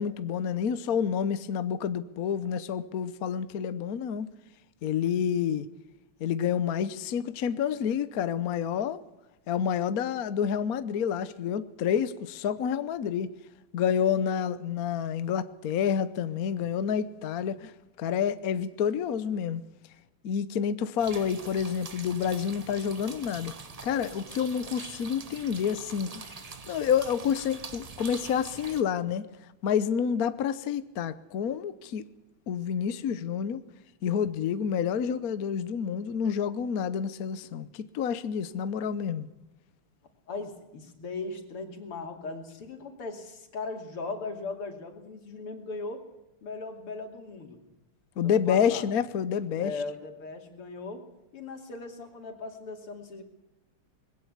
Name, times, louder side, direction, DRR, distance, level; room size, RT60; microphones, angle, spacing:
voice 1, 0.0-4.3 4.8-5.7 6.2-9.0 9.5-13.3 13.7-17.7 18.0-19.6 20.2-23.5 23.8-26.2 26.7-29.3 29.6-32.0 32.5-33.6 34.0-39.3 48.2-49.7, left 8 dB, 55° left, 1.1 m, -28 dB
sound 1, 21.0-28.8, right 4 dB, 80° right, 0.3 m, -44 dB
voice 2, 40.3-46.0 46.4-47.6 48.2-48.8 49.6-51.0 51.3-53.2, left 3 dB, 85° left, 3.5 m, -38 dB
21.0 x 16.5 x 8.2 m
omnidirectional pair, 2.4 m